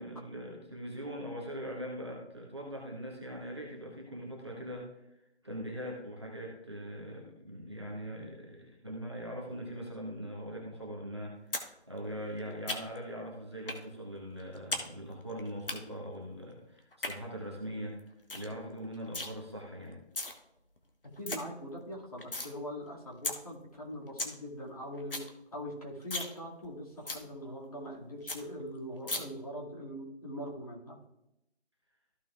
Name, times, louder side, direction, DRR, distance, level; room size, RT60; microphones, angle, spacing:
voice 1, 0.0-5.0 5.4-20.0, equal, 25° right, -3 dB, 1.2 m, -41 dB
sound 1, 11.5-11.7 12.0-13.1 13.7-13.8 14.2-14.9 15.1-15.7 16.8-17.1 17.6-17.7 18.0-18.1 18.3-18.5 18.8-19.3 19.9-20.3 20.8-20.9 21.0-21.4 21.8-22.5 22.9-23.0 23.2-23.4 23.7-23.8 24.0-24.3 24.7-24.8 25.0-25.3 25.6-25.7 26.0-26.3 26.6-26.7 27.1-27.2 27.6-27.7 27.9-28.0 28.3-28.4 29.1-29.2, left 2 dB, 55° left, 1.3 m, -35 dB
voice 2, 21.2-31.0, equal, 35° left, -3 dB, 2.1 m, -42 dB
14.5 x 5.9 x 2.4 m, 0.85 s
figure-of-eight pair, 175°, 33 cm